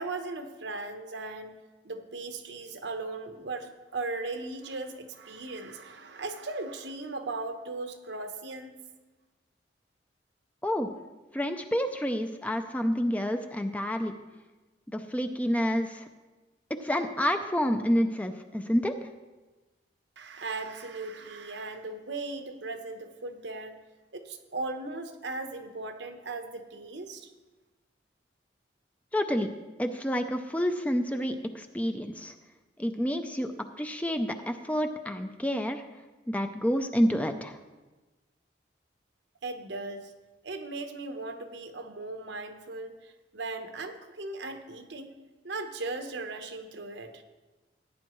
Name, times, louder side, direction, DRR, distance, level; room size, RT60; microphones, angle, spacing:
voice 1, 0.0-1.6 1.8-8.7 20.2-23.8 24.1-27.3 39.4-40.1 40.4-45.1 45.4-47.2, right 3 dB, 75° right, 6 dB, 1.0 m, -38 dB
voice 2, 11.3-14.1 14.9-16.1 16.7-18.9 29.1-29.5 29.8-32.3 32.8-33.5 33.8-35.8 36.3-37.6, equal, 10° left, 7 dB, 0.4 m, -28 dB
15.5 x 9.6 x 3.1 m, 1.2 s
head